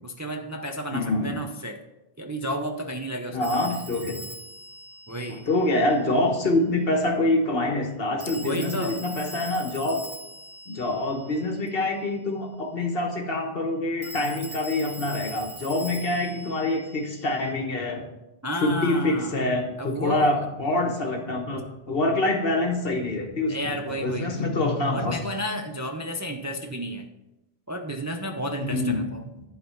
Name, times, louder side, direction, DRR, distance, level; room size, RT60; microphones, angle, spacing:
voice 1, 0.0-1.8 2.2-3.8 5.1-5.5 8.4-9.0 18.4-19.4 19.8-20.4 23.5-24.5 24.9-27.1 27.7-29.3, equal, 20° right, 3 dB, 0.5 m, -32 dB
voice 2, 0.9-1.4 3.3-4.2 5.3-10.0 10.7-18.0 18.6-25.2 28.6-29.1, left 2 dB, 60° left, 4 dB, 1.4 m, -26 dB
Telephone, 3.4-6.1 8.2-11.8 14.0-17.5, right 2 dB, 75° right, 1.4 m, -42 dB
11.0 x 4.3 x 5.7 m, 0.94 s
omnidirectional pair, 1.1 m